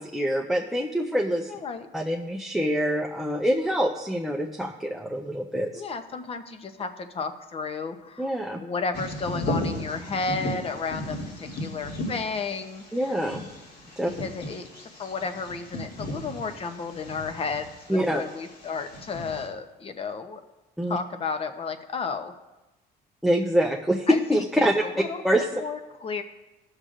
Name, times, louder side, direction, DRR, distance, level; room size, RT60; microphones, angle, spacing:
voice 1, 0.0-1.5 1.9-5.7 8.2-8.6 12.9-13.4 14.0-14.1 17.9-18.2 20.8-21.0 23.2-24.8 25.2-25.5, equal, ahead, 0 dB, 0.6 m, -25 dB
voice 2, 1.5-1.9 5.7-8.3 8.6-13.2 14.1-14.7 15.0-20.4 20.9-22.3 24.1-26.2, left 4 dB, 35° left, 9 dB, 0.8 m, -33 dB
Bird vocalization bird call bird song, 8.9-19.5, left 1 dB, 75° left, 2.4 m, -36 dB
17.0 x 6.5 x 2.5 m, 1.1 s
cardioid pair, 110°, 17 cm